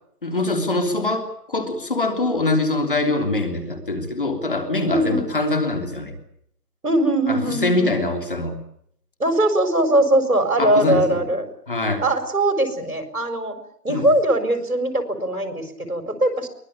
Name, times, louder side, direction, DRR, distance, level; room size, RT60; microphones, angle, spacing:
voice 1, 0.2-6.1 7.3-8.6 10.6-11.2 11.7-12.0 13.9-14.1, left 2 dB, 35° left, 6 dB, 3.2 m, -23 dB
voice 2, 4.9-5.2 6.8-8.0 9.2-11.4 12.0-13.6 13.8-16.5, right 1 dB, 60° right, 7 dB, 5.1 m, -21 dB
23.5 x 19.5 x 8.5 m, 0.70 s
figure-of-eight pair, 175°, 47 cm